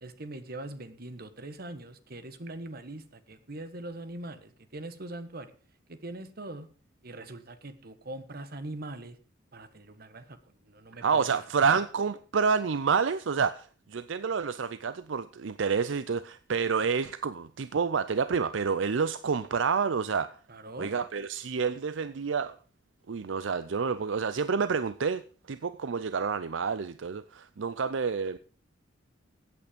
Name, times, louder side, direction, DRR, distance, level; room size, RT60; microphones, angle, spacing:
voice 1, 0.0-5.5 5.9-6.7 7.0-9.2 9.5-10.4 10.6-11.3 11.6-11.8 20.5-20.9, right 2 dB, 50° right, 1.3 m, -42 dB
voice 2, 11.0-20.4 20.8-22.6 23.1-25.2 25.5-28.4, right 5 dB, 70° right, 0.5 m, -28 dB
15.5 x 8.6 x 5.1 m
head